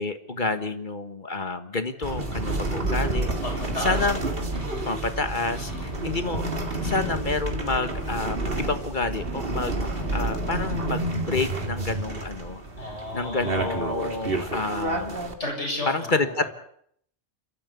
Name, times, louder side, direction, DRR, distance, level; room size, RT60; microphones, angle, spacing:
voice 1, 0.0-3.3 3.8-4.2 4.8-15.2 15.9-16.4, left 3 dB, 45° left, 9 dB, 1.7 m, -29 dB
sound 1, 2.0-15.3, right 2 dB, 55° right, 2.3 m, -29 dB
voice 2, 3.4-4.1 4.5-4.9 5.5-5.9 12.8-14.5 15.4-16.5, left 1 dB, 85° left, 1 dB, 7.5 m, -34 dB
29.5 x 13.5 x 8.3 m, 0.69 s
omnidirectional pair, 1.2 m